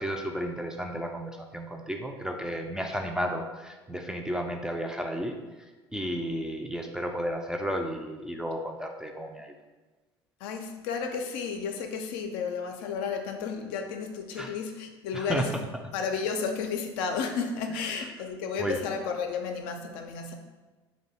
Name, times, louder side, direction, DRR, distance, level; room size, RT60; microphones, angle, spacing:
voice 1, 0.0-5.4 5.9-9.5 14.4-14.5 15.1-15.4 18.6-18.8, equal, 5° right, 2 dB, 0.4 m, -33 dB
voice 2, 10.4-15.5 15.9-20.3, left 5 dB, 65° left, 4 dB, 0.4 m, -32 dB
2.6 x 2.2 x 4.0 m, 1.2 s
hypercardioid pair, 65°, 13 cm